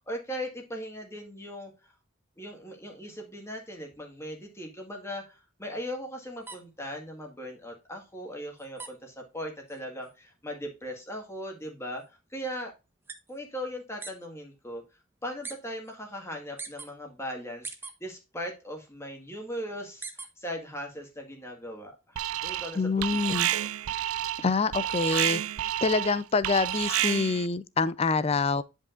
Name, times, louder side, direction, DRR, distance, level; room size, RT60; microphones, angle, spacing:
voice 1, 0.1-1.9 2.4-12.7 13.3-14.8 15.2-17.7 18.0-22.2 22.4-23.7, equal, 15° left, 1.6 m, -39 dB
sound 1, 6.4-14.3 14.5-15.6 15.8-16.9 17.3-18.5 18.8-20.6 20.9-22.2, right 4 dB, 10° right, 0.6 m, -45 dB
Alarm, 22.2-22.8 23.0-27.5, right 13 dB, 80° right, 0.4 m, -29 dB
voice 2, 22.8-23.5 24.4-25.4 25.8-28.6, left 4 dB, 30° left, 0.4 m, -26 dB
9.6 x 5.3 x 2.5 m
head